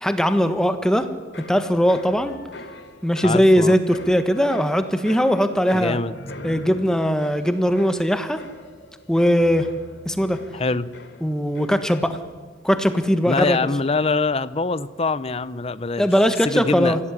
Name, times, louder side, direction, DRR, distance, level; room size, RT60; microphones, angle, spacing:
voice 1, 0.0-1.1 1.5-2.4 3.0-6.0 6.4-8.4 9.1-9.7 10.0-10.4 11.2-12.2 12.6-13.6 16.0-17.0, equal, 5° left, 8 dB, 1.4 m, -19 dB
sound 1, 0.8-12.4 12.7-13.2, left 1 dB, 75° left, 2.9 m, -42 dB
voice 2, 3.2-3.7 5.7-6.1 10.5-10.9 13.3-16.1 16.4-17.0, left 3 dB, 35° left, 15 dB, 0.7 m, -24 dB
26.0 x 17.0 x 10.0 m, 1.3 s
head